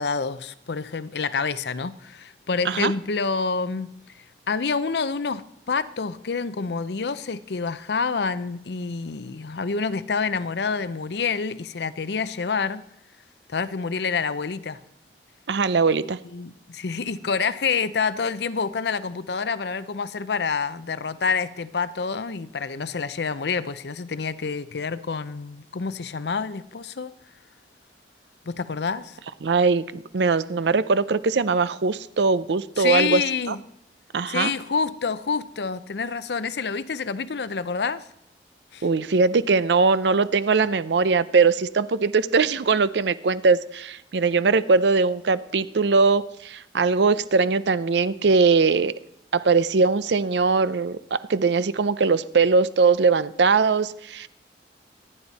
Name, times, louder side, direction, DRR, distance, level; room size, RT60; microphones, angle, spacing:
voice 1, 0.0-4.0 4.5-12.9 13.5-14.8 16.3-27.2 28.5-29.2 32.8-33.6 34.3-38.0 38.7-38.9, left 5 dB, 70° left, 0.6 m, -27 dB
voice 2, 15.5-16.2 29.4-33.6 34.1-34.5 38.8-48.9 49.3-54.3, right 4 dB, 75° right, 0.6 m, -21 dB
25.5 x 9.8 x 4.1 m
head